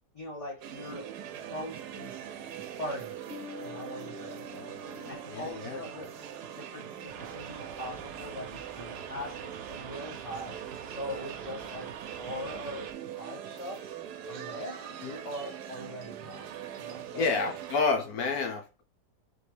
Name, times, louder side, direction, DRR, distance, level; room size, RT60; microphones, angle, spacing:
voice 1, 0.1-1.1 1.4-2.3 2.8-3.3 3.6-4.7 5.1-6.2 6.5-10.6 10.9-13.9 14.3-16.5 16.8-17.3, left 1 dB, 20° left, 1.3 m, -41 dB
sound 1, 0.6-17.8, right 9 dB, 80° right, 1.2 m, -42 dB
Bass guitar, 3.3-6.8, left 6 dB, 50° left, 1.6 m, -48 dB
voice 2, 4.5-5.8 15.0-15.1 17.2-18.8, left 4 dB, 70° left, 1.2 m, -30 dB
sound 2, 7.1-12.9, right 7 dB, 60° right, 0.8 m, -46 dB
4.1 x 2.9 x 3.3 m
omnidirectional pair, 1.7 m